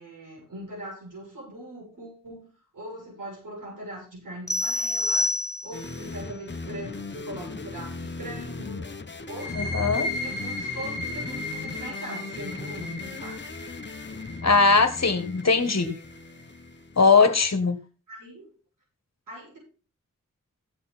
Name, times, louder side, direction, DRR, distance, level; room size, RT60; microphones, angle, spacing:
voice 1, 0.0-2.5 2.7-5.3 5.6-8.9 9.3-13.5 15.1-15.2 17.2-17.4 18.1-18.5 19.3-19.6, right 1 dB, 85° right, -4 dB, 7.4 m, -41 dB
sound 1, 4.5-6.0, left 2 dB, 10° left, 0.8 m, -27 dB
sound 2, 5.7-17.2, left 3 dB, 35° left, 1.0 m, -38 dB
sound 3, 9.3-16.7, left 2 dB, 45° right, 5.3 m, -36 dB
voice 2, 9.5-10.1 14.4-16.0 17.0-17.8, left 4 dB, 55° left, 9 dB, 1.6 m, -20 dB
16.0 x 6.7 x 4.2 m, 0.38 s
wide cardioid pair, 60°, 32 cm